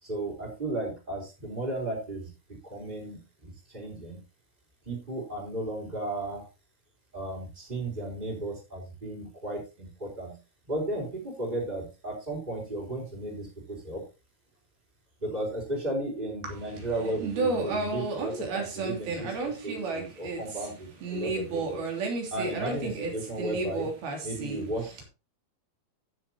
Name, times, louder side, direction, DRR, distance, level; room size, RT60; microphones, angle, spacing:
voice 1, 0.0-2.3 2.6-4.2 4.9-6.4 7.1-10.4 10.7-14.0 15.2-21.8 22.3-23.9 24.2-25.0, right 1 dB, 10° right, -6 dB, 4.1 m, -34 dB
voice 2, 16.4-20.7 21.0-24.6, right 3 dB, 70° right, 1 dB, 4.8 m, -32 dB
16.0 x 7.2 x 3.0 m, 0.29 s
omnidirectional pair, 4.6 m